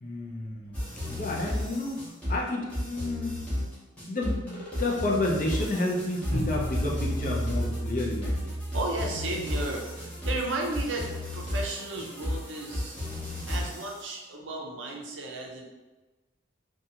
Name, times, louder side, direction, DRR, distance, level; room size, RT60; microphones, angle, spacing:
voice 1, 0.0-2.0 2.3-3.4 4.1-8.4, left 1 dB, 45° left, -3 dB, 0.5 m, -30 dB
sound 1, 0.7-14.0, left 1 dB, 5° left, 0.7 m, -34 dB
sound 2, 6.3-11.3, right 1 dB, 30° right, 0.8 m, -34 dB
voice 2, 8.7-13.0 13.5-15.6, right 2 dB, 75° right, 0 dB, 0.6 m, -34 dB
2.6 x 2.3 x 2.8 m, 1.2 s
head